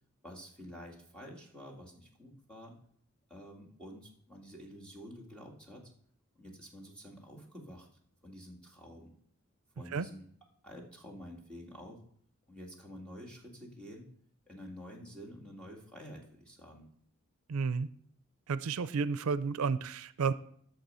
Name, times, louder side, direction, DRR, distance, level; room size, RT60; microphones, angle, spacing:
voice 1, 0.2-2.7 3.3-5.9 6.4-7.9 8.2-9.1 9.8-10.3 10.6-12.0 12.5-14.1 14.5-16.9, equal, 5° left, -2 dB, 1.9 m, -49 dB
voice 2, 17.5-17.9 18.5-20.3, right 5 dB, 85° right, 15 dB, 0.5 m, -31 dB
10.5 x 6.7 x 5.5 m, 0.64 s
head